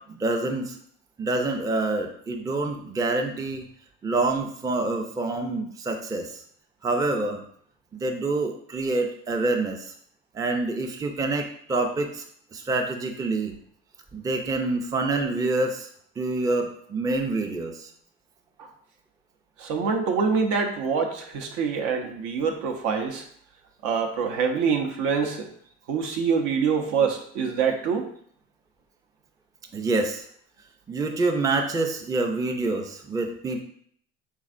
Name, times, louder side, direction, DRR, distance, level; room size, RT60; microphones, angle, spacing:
voice 1, 0.1-0.7 1.2-3.6 4.0-6.3 6.8-7.4 8.0-9.9 10.3-12.2 12.5-13.6 14.1-15.9 16.2-17.9 29.7-30.2 30.9-33.6, right 2 dB, 10° right, 4 dB, 0.4 m, -26 dB
voice 2, 19.6-23.3 23.8-25.5 25.9-28.1, right 5 dB, 70° right, 4 dB, 0.7 m, -25 dB
3.5 x 3.1 x 2.5 m, 0.63 s
supercardioid pair, 80°, 30 cm